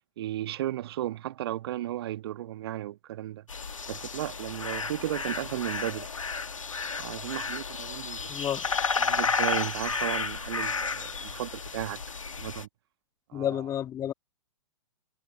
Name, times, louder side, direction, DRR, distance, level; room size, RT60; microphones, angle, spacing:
voice 1, 0.2-3.4 3.9-6.1 7.0-8.4 9.0-12.0 12.4-12.7 13.3-13.6, right 13 dB, 50° right, 1.4 m, -34 dB
sound 1, 3.5-12.7, left 5 dB, 75° left, 1.7 m, -32 dB
voice 2, 8.3-8.7 13.3-14.1, left 10 dB, 20° left, 1.9 m, -30 dB
figure-of-eight pair, 110°, 17 cm